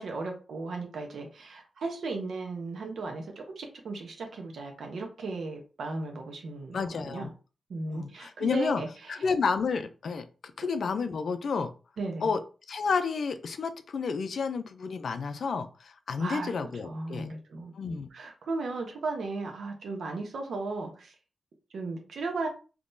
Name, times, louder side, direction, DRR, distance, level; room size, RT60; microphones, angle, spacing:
voice 1, 0.0-7.3 7.7-8.9 12.0-12.3 16.2-21.1 21.7-22.5, right 3 dB, 85° right, 2 dB, 0.8 m, -36 dB
voice 2, 6.7-7.3 7.9-8.8 9.1-10.3 10.6-11.7 12.2-12.4 12.7-17.3 17.7-18.1, left 5 dB, 65° left, 10 dB, 0.4 m, -30 dB
3.7 x 2.9 x 2.6 m, 0.34 s
wide cardioid pair, 155°, 0 cm